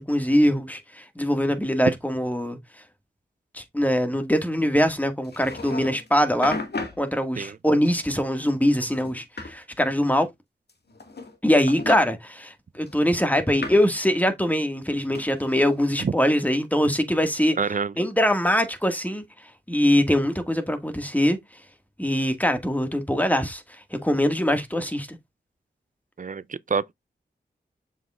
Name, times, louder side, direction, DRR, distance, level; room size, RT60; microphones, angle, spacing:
voice 1, 0.0-2.6 3.5-6.6 7.0-10.3 11.4-17.5 18.0-19.2 19.7-21.4 22.0-23.6 23.9-25.2, equal, 10° left, 1.8 m, -23 dB
sound 1, 5.2-6.1 6.4-7.0 7.8-8.5 8.8-9.5 10.7-11.4 11.7-12.0 12.9-13.9 15.1-16.0, left 3 dB, 65° left, 1.8 m, -35 dB
voice 2, 17.6-17.9 26.2-26.9, right 5 dB, 45° right, 0.5 m, -27 dB
7.0 x 6.2 x 2.4 m
cardioid pair, 40°, 18 cm